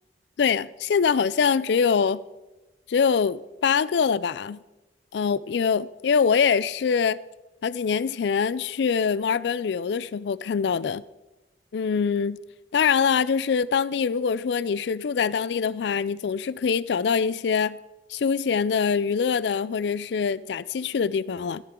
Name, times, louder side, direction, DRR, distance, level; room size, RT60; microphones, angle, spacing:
voice 1, 0.4-2.2 2.9-4.6 5.1-7.2 7.6-11.0 11.7-12.4 12.7-17.8 18.1-21.6, left 6 dB, 65° left, 0.4 m, -24 dB
14.0 x 9.8 x 3.7 m
head